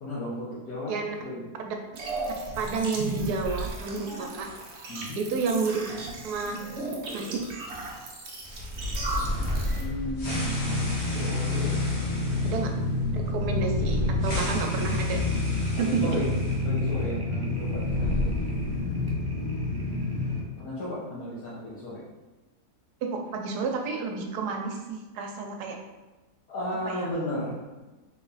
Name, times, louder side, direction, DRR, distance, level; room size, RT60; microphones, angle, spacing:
voice 1, 0.0-1.5 4.9-5.2 9.8-12.6 12.9-13.4 15.7-16.2 16.6-18.4 20.6-22.0 26.5-27.9, left 1 dB, 70° left, -9 dB, 1.3 m, -35 dB
sound 1, 2.0-9.8, right 2 dB, 55° right, 0.8 m, -36 dB
voice 2, 2.5-4.5 5.2-5.8 6.2-6.6 7.1-7.4 12.4-12.7 13.1-15.2 15.8-16.0 23.0-25.8 26.9-27.1, right 4 dB, 80° right, 3 dB, 1.2 m, -30 dB
sound 2, 8.4-16.6 16.9-17.0 17.6-19.0, left 1 dB, 45° left, 1.3 m, -34 dB
sound 3, 10.2-20.4, left 2 dB, 30° right, 0.4 m, -28 dB
3.6 x 3.0 x 3.9 m, 1.2 s
omnidirectional pair, 1.7 m